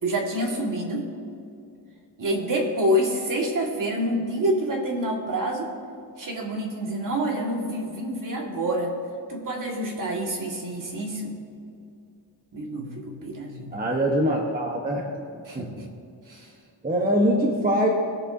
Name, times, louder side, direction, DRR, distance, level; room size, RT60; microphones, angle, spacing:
voice 1, 0.0-1.1 2.2-5.7 6.2-9.0 9.3-11.3 12.5-13.8 15.5-15.7 16.3-16.5, equal, 45° right, -1 dB, 1.9 m, -27 dB
voice 2, 13.7-15.1 15.5-15.7 16.8-17.9, equal, 20° right, -1 dB, 1.1 m, -23 dB
21.5 x 7.3 x 2.7 m, 2.5 s
wide cardioid pair, 145°, 46 cm